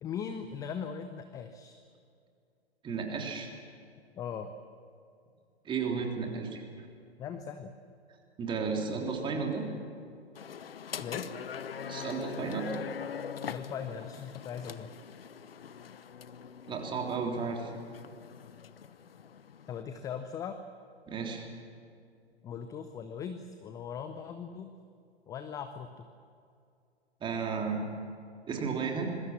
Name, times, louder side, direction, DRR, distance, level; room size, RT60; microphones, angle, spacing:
voice 1, 0.0-1.8 4.2-4.5 7.2-7.7 11.0-11.3 13.4-14.9 19.7-20.6 22.4-24.7 25.3-26.1, left 7 dB, 10° left, 9 dB, 0.6 m, -39 dB
voice 2, 2.8-3.5 5.6-6.6 8.4-9.7 11.9-12.7 16.7-17.7 21.1-21.4 27.2-27.8 28.5-29.1, right 5 dB, 15° right, 1 dB, 3.3 m, -33 dB
sound 1, 10.3-19.8, left 7 dB, 60° left, 1.0 m, -43 dB
26.0 x 21.0 x 7.5 m, 2.4 s
figure-of-eight pair, 115°, 33 cm